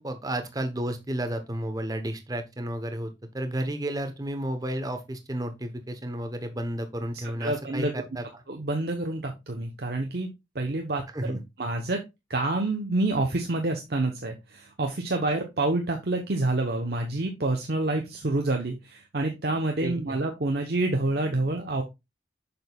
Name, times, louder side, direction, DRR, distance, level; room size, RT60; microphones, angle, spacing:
voice 1, 0.0-8.4 11.1-11.4 19.8-20.2, right 1 dB, 20° right, 7 dB, 0.8 m, -32 dB
voice 2, 7.4-7.9 8.5-10.3 10.5-12.0 12.3-21.8, right 2 dB, 55° right, 3 dB, 0.8 m, -28 dB
6.8 x 6.2 x 2.3 m, 0.23 s
head